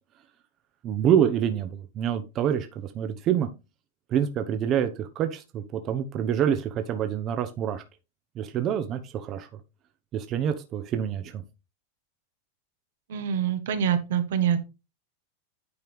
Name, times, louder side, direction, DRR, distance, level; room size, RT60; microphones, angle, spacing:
voice 1, 0.8-3.5 4.1-7.8 8.4-9.5 10.1-11.4, right 9 dB, 35° right, 8 dB, 0.9 m, -26 dB
voice 2, 13.1-14.6, right 8 dB, 75° right, 9 dB, 1.4 m, -25 dB
9.5 x 4.5 x 3.5 m, 0.27 s
hypercardioid pair, 120°, 0 cm